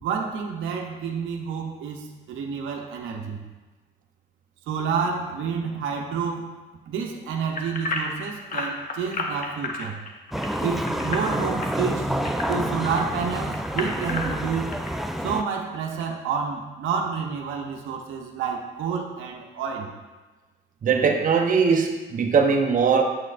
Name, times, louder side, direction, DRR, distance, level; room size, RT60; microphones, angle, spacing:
voice 1, 0.0-3.4 4.7-6.5 6.9-10.0 10.6-12.1 12.5-14.7 15.2-19.9, right 6 dB, 85° right, 2 dB, 0.7 m, -29 dB
sound 1, 7.6-13.0 13.5-14.9 15.4-15.5 16.0-16.1, left 3 dB, 45° left, 0.9 m, -31 dB
sound 2, 10.3-15.4, equal, ahead, 0.3 m, -28 dB
voice 2, 20.8-23.0, right 5 dB, 40° right, 2 dB, 0.8 m, -20 dB
7.7 x 6.2 x 2.5 m, 1.2 s
cardioid pair, 90°, 20 cm